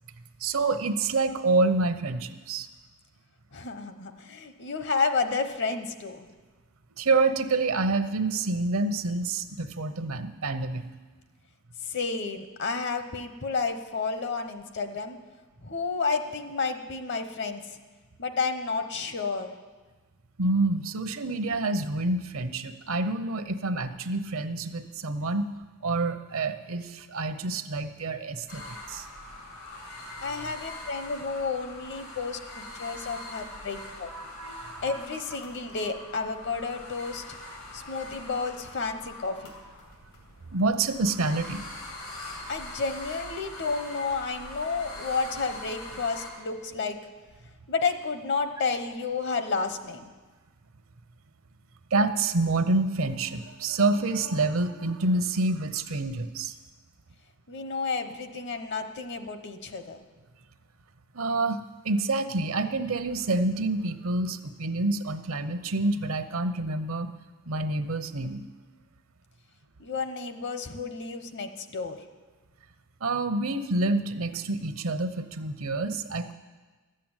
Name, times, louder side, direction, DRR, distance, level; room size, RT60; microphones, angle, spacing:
voice 1, 0.4-2.7 7.0-10.8 20.4-25.5 25.8-29.1 30.0-30.5 33.8-35.0 40.5-41.7 51.9-56.5 61.1-67.1 67.5-68.5 73.0-76.3, right 3 dB, 70° right, 10 dB, 0.8 m, -28 dB
voice 2, 3.5-6.2 11.8-15.2 15.6-17.6 18.2-19.5 30.2-34.1 34.8-37.2 37.7-39.5 42.5-47.0 47.7-50.1 57.5-60.0 69.8-72.0, left 4 dB, 55° left, 8 dB, 1.0 m, -31 dB
sound 1, 28.5-46.3, left 2 dB, 85° left, 2.8 m, -43 dB
12.5 x 7.6 x 8.9 m, 1.3 s
head